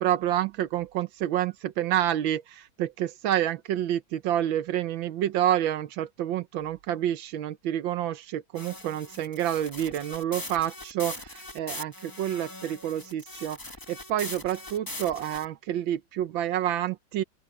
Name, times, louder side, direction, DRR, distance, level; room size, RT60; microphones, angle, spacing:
voice 1, 0.0-17.2, right 11 dB, 85° right, 1.6 m, -28 dB
sound 1, 8.5-15.4, left 1 dB, 10° left, 1.5 m, -41 dB
open air
omnidirectional pair, 2.1 m